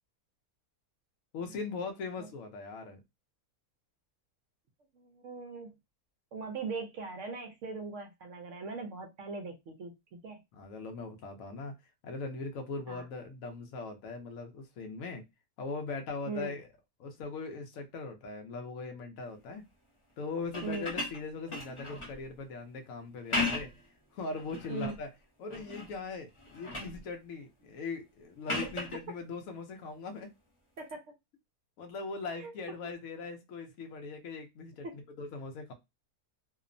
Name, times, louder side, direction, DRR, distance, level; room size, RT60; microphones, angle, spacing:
voice 1, 1.3-3.0 10.5-11.7 12.0-15.2 15.6-16.7 17.0-19.6 20.2-23.7 24.1-25.1 25.4-30.3 31.8-35.7, left 4 dB, 70° left, 1.0 m, -40 dB
voice 2, 4.9-5.7 6.3-10.4 12.9-13.1 16.3-16.5 20.6-20.9 24.7-25.0 28.6-28.8 30.8-31.0 32.3-32.5 34.8-34.9, right 4 dB, 65° right, 0.8 m, -40 dB
sound 1, 20.4-22.2 23.1-23.9 24.4-25.0 25.5-26.0 26.3-27.0 28.5-29.0 30.8-30.9, left 2 dB, 30° left, 0.6 m, -36 dB
2.8 x 2.0 x 2.5 m
omnidirectional pair, 1.6 m